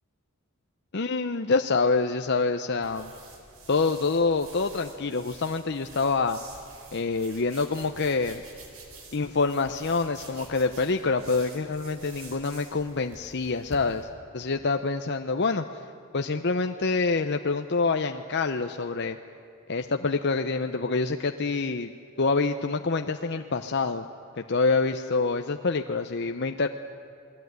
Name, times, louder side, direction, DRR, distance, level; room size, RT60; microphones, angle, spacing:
voice 1, 0.9-3.1 3.7-6.4 6.9-8.4 9.1-14.1 14.3-15.6 16.1-19.2 19.7-21.9 22.2-24.0 24.4-26.7, left 4 dB, 50° left, 6 dB, 0.8 m, -26 dB
sound 1, 2.8-14.0, right 3 dB, 80° right, 4.5 m, -48 dB
28.5 x 20.0 x 9.5 m, 2.6 s
head